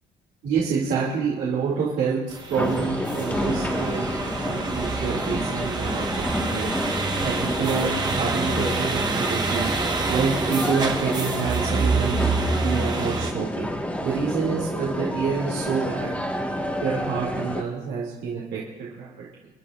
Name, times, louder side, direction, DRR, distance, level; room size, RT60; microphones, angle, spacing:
voice 1, 0.4-4.1 4.4-6.7 7.2-9.7 10.1-13.7 14.0-16.1 16.8-19.1, right 5 dB, 70° right, -6 dB, 2.6 m, -27 dB
sound 1, 2.3-13.3, right 4 dB, 25° right, 1.3 m, -28 dB
sound 2, 2.5-17.6, left 1 dB, 10° left, 1.6 m, -29 dB
sound 3, 3.4-11.8, right 4 dB, 40° right, 2.9 m, -43 dB
28.0 x 10.5 x 2.5 m, 1.2 s
cardioid pair, 110°, 17 cm